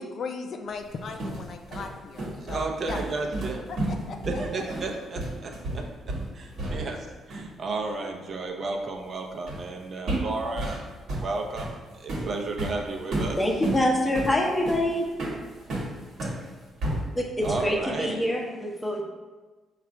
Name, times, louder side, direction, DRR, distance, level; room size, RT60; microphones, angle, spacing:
voice 1, 0.0-3.0 3.7-4.2, left 4 dB, 55° left, 5 dB, 0.5 m, -37 dB
sound 1, 0.8-7.1 7.3-7.5 9.5-9.7 10.1-16.4 16.8-17.7, right 1 dB, 70° right, 1.2 m, -32 dB
voice 2, 2.5-3.6 4.2-5.9 6.3-10.8 11.1-13.4 17.4-18.2, right 3 dB, 45° right, 2 dB, 0.6 m, -33 dB
voice 3, 13.4-15.1 16.2-16.3 17.2-19.0, left 1 dB, 15° left, 0 dB, 0.8 m, -25 dB
4.8 x 2.4 x 4.3 m, 1.3 s
cardioid pair, 90°, 0 cm